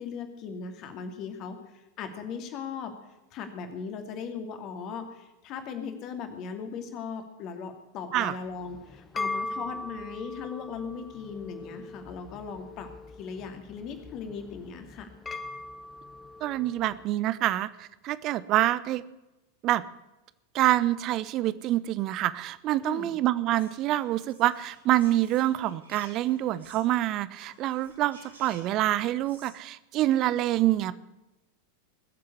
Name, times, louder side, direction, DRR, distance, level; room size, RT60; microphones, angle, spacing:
voice 1, 0.0-2.9 3.3-12.9 13.2-15.1 22.8-23.1, left 6 dB, 35° left, 6 dB, 2.5 m, -38 dB
sound 1, 8.5-17.0, left 2 dB, 15° left, 1.2 m, -40 dB
voice 2, 16.4-19.0 19.6-19.8 20.5-31.0, right 14 dB, 35° right, 17 dB, 0.7 m, -26 dB
Whispering, 23.5-27.0 27.3-29.5, right 2 dB, 75° right, 6.7 m, -55 dB
21.0 x 7.7 x 8.2 m, 0.99 s
figure-of-eight pair, 90°, 0 cm